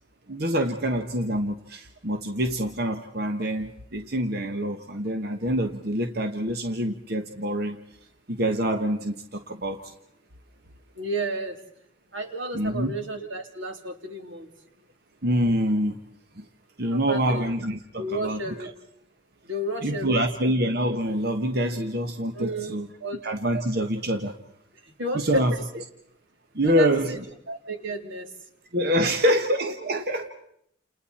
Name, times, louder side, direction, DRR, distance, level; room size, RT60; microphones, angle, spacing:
voice 1, 0.3-7.8 8.3-9.9 12.5-12.9 15.2-16.0 16.4-16.5 16.8-18.4 19.8-22.9 23.2-24.3 25.1-25.5 26.5-27.2 28.7-30.3, equal, 50° right, 5 dB, 1.3 m, -26 dB
voice 2, 10.9-11.6 12.1-14.5 16.9-17.5 18.0-18.7 19.4-20.2 22.3-22.7 23.0-23.2 24.8-25.6 26.6-27.2 27.5-28.3 29.0-29.3, right 1 dB, 80° right, 4 dB, 3.4 m, -32 dB
30.0 x 29.0 x 4.3 m, 0.75 s
head